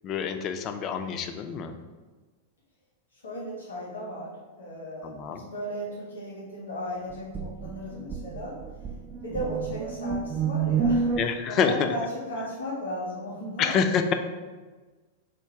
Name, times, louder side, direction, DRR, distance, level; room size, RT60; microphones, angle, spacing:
voice 1, 0.0-1.8 5.0-5.4 11.2-11.9 13.6-14.1, left 7 dB, 40° left, 7 dB, 0.4 m, -27 dB
voice 2, 3.2-4.3 4.6-8.6 9.2-11.2 11.5-13.7, equal, 85° left, -5 dB, 1.3 m, -35 dB
sound 1, 7.1-11.3, right 5 dB, 30° right, 0.3 m, -29 dB
3.6 x 2.5 x 4.4 m, 1.3 s
hypercardioid pair, 105°, 0 cm